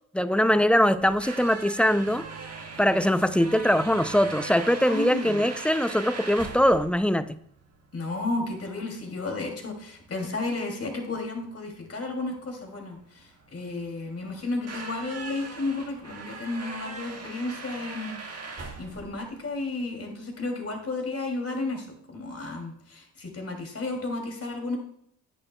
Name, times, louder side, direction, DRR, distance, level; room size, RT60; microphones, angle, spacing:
voice 1, 0.1-2.2 2.8-7.3, equal, 5° left, 14 dB, 0.4 m, -22 dB
sound 1, 0.9-19.8, right 4 dB, 40° right, 1.8 m, -41 dB
voice 2, 4.9-5.5 7.9-18.2 18.5-24.8, left 2 dB, 40° left, 2 dB, 2.7 m, -33 dB
10.5 x 8.7 x 2.3 m, 0.70 s
supercardioid pair, 60°, 37 cm